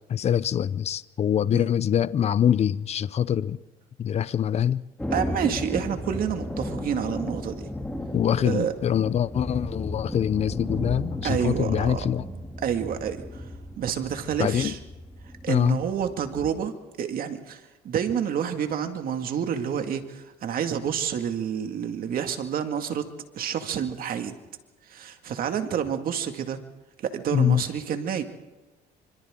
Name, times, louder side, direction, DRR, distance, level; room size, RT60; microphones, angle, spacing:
voice 1, 0.1-3.6 4.0-4.8 8.1-12.2 14.4-14.7 15.5-15.8 27.3-27.6, left 9 dB, 40° left, 0.6 m, -24 dB
Thunder, 5.0-16.5, left 1 dB, 5° left, 3.0 m, -35 dB
voice 2, 5.1-7.7 8.4-8.7 11.2-12.0 12.6-13.5 13.8-14.8 15.4-23.1 23.3-24.3 24.9-26.6 27.0-28.2, right 8 dB, 60° right, 2.2 m, -29 dB
26.5 x 25.5 x 3.8 m
cardioid pair, 110°, 17 cm